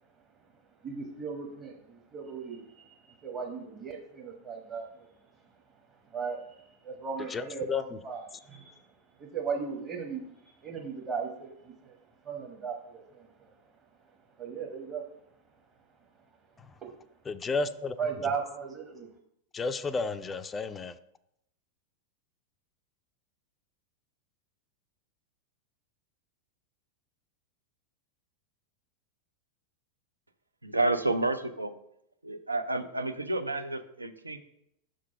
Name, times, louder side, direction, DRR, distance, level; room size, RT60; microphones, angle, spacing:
voice 1, 0.8-5.1 6.1-8.8 9.2-12.0 12.2-13.5 14.4-15.0 16.8-16.9 18.0-19.1, right 5 dB, 25° right, 0 dB, 0.9 m, -37 dB
voice 2, 7.3-7.8 17.3-18.0 19.5-20.9, left 4 dB, 20° left, 13 dB, 0.4 m, -32 dB
voice 3, 30.6-31.7 32.2-34.4, right 2 dB, 80° right, 9 dB, 0.5 m, -30 dB
6.1 x 3.9 x 5.6 m, 0.77 s
figure-of-eight pair, 90°, 0 cm